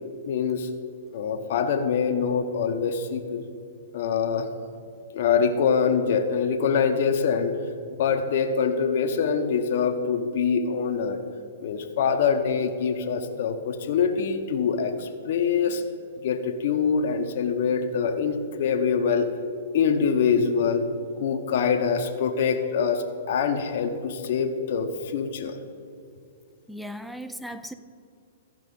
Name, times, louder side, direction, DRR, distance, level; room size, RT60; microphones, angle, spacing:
voice 1, 0.3-0.7 1.1-3.5 3.9-4.5 5.1-7.6 8.0-11.2 11.6-15.8 16.2-19.3 19.7-20.9 21.2-25.6, left 6 dB, 60° left, 5 dB, 0.8 m, -24 dB
voice 2, 26.7-27.7, equal, ahead, 10 dB, 0.4 m, -37 dB
14.5 x 5.6 x 5.3 m, 2.6 s
hypercardioid pair, 130°, 0 cm